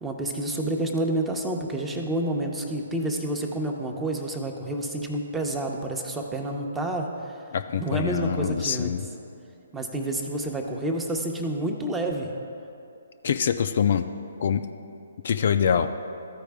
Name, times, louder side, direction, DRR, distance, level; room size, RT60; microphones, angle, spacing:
voice 1, 0.0-7.3 7.8-9.0 9.7-12.3, right 1 dB, 10° right, 2 dB, 0.7 m, -29 dB
voice 2, 7.5-9.1 13.2-14.1 14.4-14.7 15.2-15.9, left 7 dB, 55° left, 8 dB, 0.4 m, -24 dB
13.5 x 4.8 x 3.5 m, 2.6 s
figure-of-eight pair, 140°, 0 cm